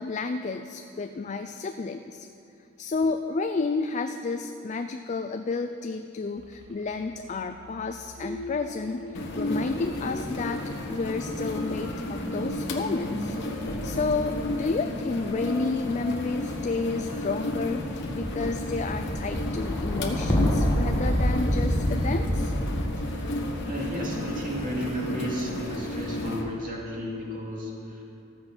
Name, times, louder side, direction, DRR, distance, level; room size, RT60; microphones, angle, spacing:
voice 1, 0.0-2.3 2.8-10.6 10.9-22.5, left 4 dB, 35° left, 7 dB, 0.4 m, -31 dB
sound 1, 6.4-17.8, left 2 dB, 80° right, 1.8 m, -51 dB
sound 2, 8.2-9.5 9.8-24.8 25.6-26.2, equal, 15° left, 1.5 m, -31 dB
sound 3, 9.1-26.4, left 1 dB, 55° left, 1.2 m, -33 dB
voice 2, 23.0-28.0, equal, 40° right, -3 dB, 2.3 m, -33 dB
14.0 x 7.6 x 6.1 m, 2.6 s
head